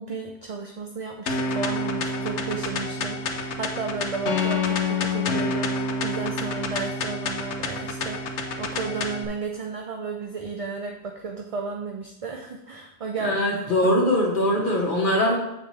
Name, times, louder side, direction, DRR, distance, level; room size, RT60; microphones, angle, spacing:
voice 1, 0.0-13.4 13.8-13.9, right 4 dB, 40° right, 2 dB, 0.6 m, -33 dB
sound 1, 1.3-9.3, left 3 dB, 90° left, 1.1 m, -28 dB
voice 2, 13.2-15.4, left 1 dB, 50° left, 0 dB, 1.3 m, -22 dB
7.4 x 6.6 x 3.2 m, 0.91 s
omnidirectional pair, 1.1 m